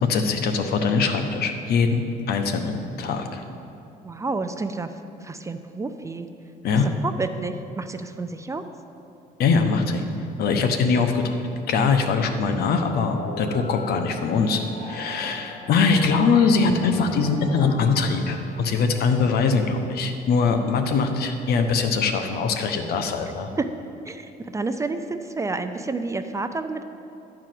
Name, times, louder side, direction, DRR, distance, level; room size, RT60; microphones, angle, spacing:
voice 1, 0.0-3.4 6.6-6.9 9.4-10.0 10.4-11.4 11.7-14.6 14.9-23.5, left 4 dB, 70° left, 6 dB, 0.9 m, -22 dB
voice 2, 4.0-4.9 5.2-6.3 6.7-8.6 23.6-23.7 24.0-26.8, right 3 dB, 20° right, 9 dB, 0.4 m, -30 dB
sound 1, 13.1-18.8, equal, 35° left, 2.2 m, -38 dB
11.5 x 4.9 x 7.6 m, 2.7 s
cardioid pair, 110°, 17 cm